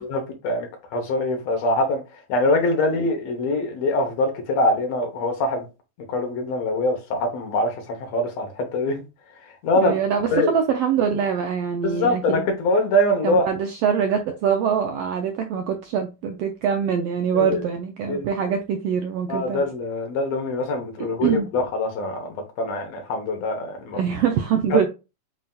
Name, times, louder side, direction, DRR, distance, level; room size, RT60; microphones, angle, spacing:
voice 1, 0.0-2.0 2.3-5.7 6.1-9.0 9.6-9.9 10.3-10.5 11.8-13.5 17.3-17.6 18.1-18.3 19.3-24.0 24.7-24.8, left 1 dB, 65° left, 2.0 m, -23 dB
voice 2, 9.8-12.5 13.2-19.6 21.2-21.5 23.9-24.9, right 7 dB, 80° right, 1.4 m, -24 dB
7.5 x 2.7 x 2.3 m
omnidirectional pair, 3.3 m